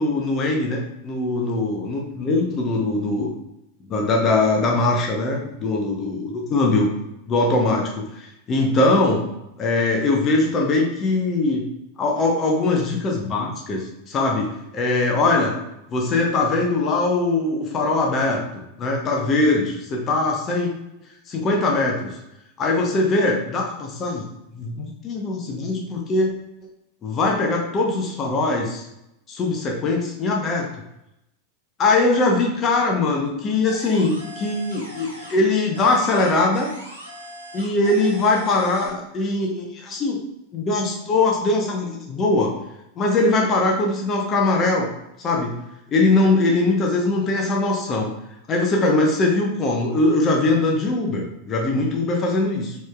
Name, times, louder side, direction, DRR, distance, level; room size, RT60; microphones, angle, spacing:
voice 1, 0.0-3.3 3.9-6.9 7.3-9.3 9.6-11.6 12.0-15.6 15.9-18.4 18.8-20.7 21.3-22.2 22.6-24.3 24.5-26.3 27.0-28.9 29.3-30.7 31.8-36.7 37.5-40.2 40.5-42.5 43.0-44.9 45.2-45.5 45.9-48.1 48.5-52.7, left 2 dB, 30° left, 0 dB, 0.7 m, -21 dB
sound 1, 33.7-35.5 35.7-38.9, right 1 dB, 90° right, 0.8 m, -39 dB
4.3 x 3.1 x 2.3 m, 0.84 s
figure-of-eight pair, 90°, 0 cm